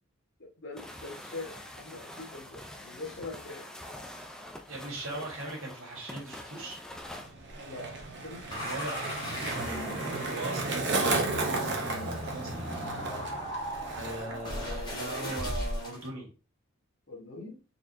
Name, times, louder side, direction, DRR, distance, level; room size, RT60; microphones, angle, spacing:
voice 1, 0.4-3.7 5.1-5.3 7.6-7.9 8.2-9.0 10.1-10.4 13.8-15.4 17.1-17.6, left 3 dB, 55° left, -1 dB, 1.2 m, -44 dB
sound 1, 0.8-7.3, left 1 dB, 5° left, 0.3 m, -45 dB
voice 2, 4.7-6.8 8.5-9.1 10.2-12.7 13.9-16.3, right 2 dB, 80° right, -2 dB, 1.8 m, -39 dB
Skateboard, 6.9-14.5 14.7-15.3, right 3 dB, 55° right, 0.8 m, -34 dB
sound 2, 8.5-16.1, equal, 20° left, 1.1 m, -37 dB
4.1 x 2.9 x 2.6 m, 0.33 s
head